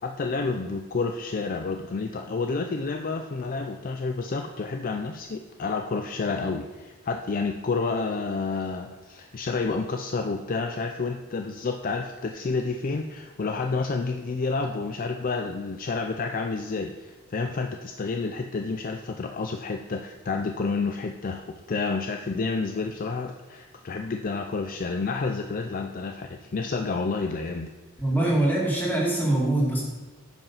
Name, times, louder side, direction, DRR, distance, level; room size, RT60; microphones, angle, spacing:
voice 1, 0.0-27.7, left 4 dB, 40° left, 4 dB, 0.4 m, -29 dB
voice 2, 28.0-29.8, right 1 dB, 10° left, -4 dB, 2.3 m, -23 dB
9.0 x 5.5 x 5.6 m, 1.2 s
head